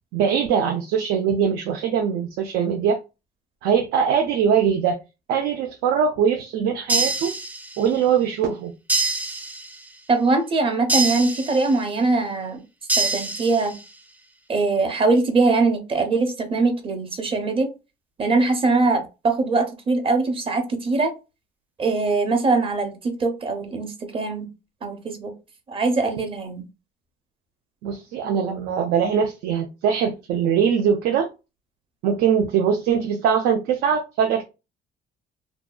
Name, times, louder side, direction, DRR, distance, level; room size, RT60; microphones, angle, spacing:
voice 1, 0.1-3.0 3.6-5.0 5.3-7.3 7.8-8.7 27.8-31.3 32.0-34.4, right 7 dB, 80° right, 0.5 m, -22 dB
sound 1, 6.9-8.0 8.9-9.9 10.9-11.9 12.9-13.9, right 3 dB, 10° right, 0.3 m, -25 dB
voice 2, 10.1-12.6 13.0-13.8 14.5-17.7 18.2-21.1 21.8-24.5 24.8-25.3 25.7-26.6, right 3 dB, 30° right, 0.7 m, -22 dB
2.6 x 2.3 x 2.2 m
cardioid pair, 110°, 17 cm